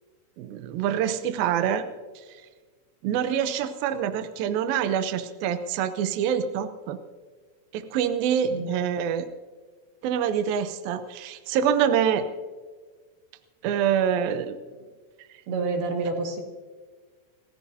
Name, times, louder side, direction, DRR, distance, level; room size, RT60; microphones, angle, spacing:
voice 1, 0.4-1.9 2.3-2.4 3.0-7.0 7.7-9.3 10.0-12.3 13.6-14.6, right 8 dB, 85° right, 9 dB, 2.0 m, -26 dB
voice 2, 15.5-16.4, right 3 dB, 65° right, 2 dB, 3.5 m, -28 dB
29.0 x 14.5 x 2.8 m, 1.4 s
omnidirectional pair, 5.2 m